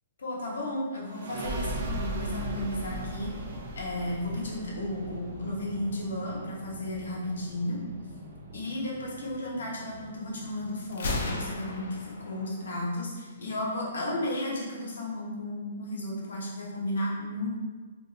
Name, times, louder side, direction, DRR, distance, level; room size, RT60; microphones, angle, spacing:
voice 1, 0.2-3.3 3.8-7.8 8.5-17.5, left 1 dB, 80° left, -3 dB, 0.9 m, -33 dB
sound 1, 1.1-12.3, right 1 dB, 45° right, 0.5 m, -39 dB
Gunshot gunfire, 10.9-12.9, left 2 dB, 65° left, 0.5 m, -34 dB
2.5 x 2.3 x 3.8 m, 1.4 s
hypercardioid pair, 160°, 0 cm